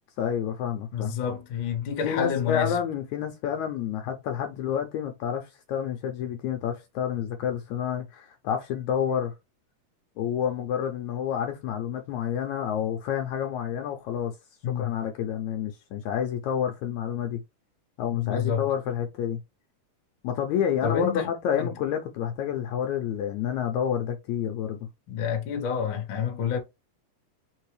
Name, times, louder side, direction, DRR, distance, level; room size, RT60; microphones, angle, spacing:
voice 1, 0.2-1.1 2.0-9.3 10.2-14.3 14.8-17.4 18.0-19.4 20.2-24.8, left 8 dB, 75° left, 1.8 m, -29 dB
voice 2, 0.9-2.8 14.6-14.9 18.1-18.7 20.8-21.3 21.6-21.7 25.1-26.6, left 8 dB, 60° left, 1.3 m, -28 dB
4.5 x 3.4 x 3.2 m
omnidirectional pair, 3.7 m